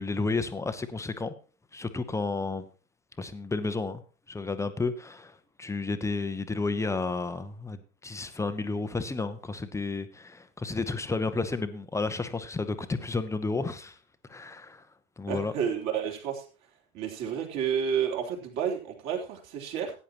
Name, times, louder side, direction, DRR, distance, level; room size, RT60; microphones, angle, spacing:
voice 1, 0.0-1.3 1.7-2.7 3.2-4.0 4.3-5.3 5.6-14.0 14.3-14.8 15.2-15.5, left 3 dB, 5° left, 0.9 m, -31 dB
voice 2, 15.3-16.4 16.9-19.9, right 8 dB, 40° right, 3.3 m, -30 dB
16.5 x 9.7 x 3.0 m
figure-of-eight pair, 95°, 41 cm